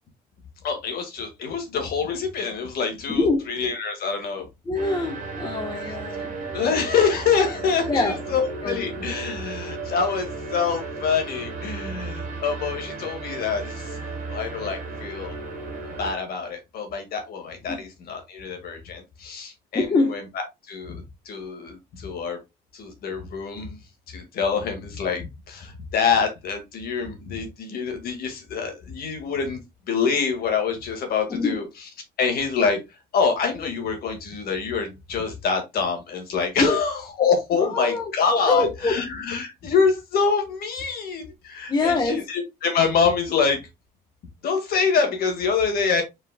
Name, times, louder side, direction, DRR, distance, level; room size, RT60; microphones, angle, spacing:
voice 1, 0.6-4.5 6.5-14.0 14.3-15.4 16.0-22.4 22.7-23.8 24.1-29.6 29.9-31.6 32.2-43.7 44.4-46.0, left 5 dB, 65° left, 1.8 m, -26 dB
voice 2, 3.1-3.5 4.7-6.3 7.9-8.2 8.6-8.8 17.7-17.8 19.7-20.2 31.3-31.6 36.6-36.8 37.5-39.0 41.7-42.2, left 3 dB, 25° left, 1.1 m, -24 dB
sound 1, 4.7-16.1, right 3 dB, 45° right, 1.7 m, -34 dB
5.3 x 4.1 x 2.2 m
cardioid pair, 110°, 17 cm